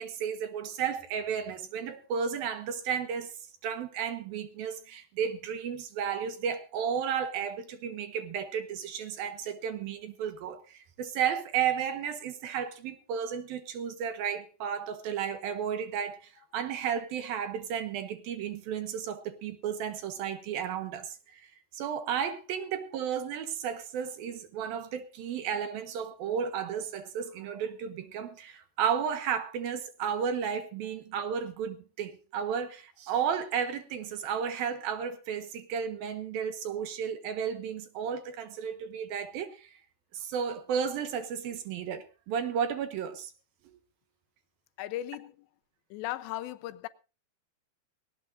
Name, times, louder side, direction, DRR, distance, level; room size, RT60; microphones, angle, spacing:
voice 1, 0.0-3.3 3.6-21.5 21.7-39.7 40.1-43.3, right 7 dB, 65° right, 2.8 m, -33 dB
voice 2, 44.8-45.5 45.9-46.9, left 14 dB, 85° left, 3.1 m, -37 dB
19.5 x 18.0 x 2.6 m
omnidirectional pair, 5.0 m